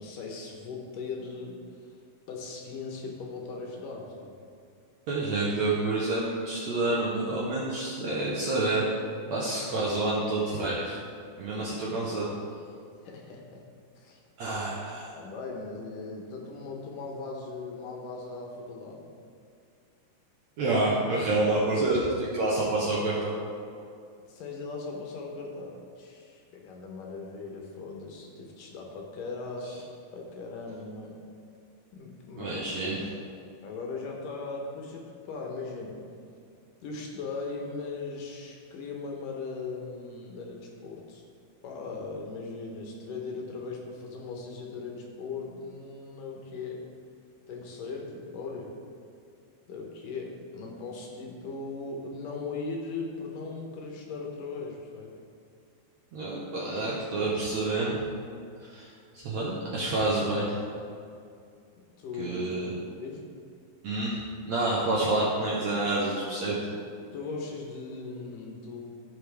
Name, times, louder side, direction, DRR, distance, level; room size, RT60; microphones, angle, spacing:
voice 1, 0.0-2.0 2.3-4.4 13.0-13.6 14.0-14.2 15.1-19.0 24.3-29.9 30.1-31.2 31.9-33.3 33.6-36.0 36.8-41.2 41.6-46.9 47.5-48.7 49.7-55.1 62.0-62.4 63.0-63.3 66.4-66.5 67.1-68.8, left 4 dB, 70° left, 0 dB, 2.4 m, -39 dB
voice 2, 5.1-8.9 9.3-11.0 11.4-12.3 14.4-15.1 20.6-23.4 32.4-33.0 56.1-58.0 58.6-60.6 62.2-62.7 63.8-64.2 64.5-66.6, right 2 dB, 70° right, -5 dB, 1.7 m, -28 dB
15.5 x 5.8 x 3.4 m, 2.4 s
omnidirectional pair, 4.5 m